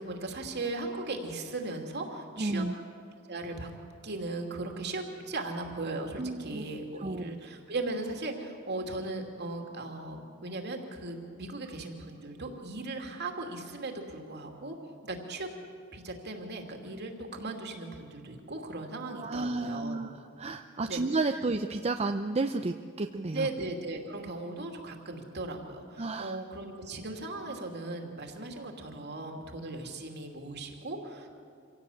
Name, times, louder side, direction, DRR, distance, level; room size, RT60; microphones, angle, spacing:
voice 1, 0.0-2.7 3.3-3.7 4.0-14.8 15.0-15.5 15.9-20.0 20.9-21.0 23.3-31.3, right 2 dB, 55° right, 3 dB, 2.7 m, -37 dB
voice 2, 2.4-2.7 6.2-6.6 7.0-7.3 19.2-20.1 20.4-23.5 26.0-26.4, right 3 dB, 30° right, 7 dB, 0.6 m, -31 dB
26.0 x 17.0 x 8.6 m, 2.4 s
head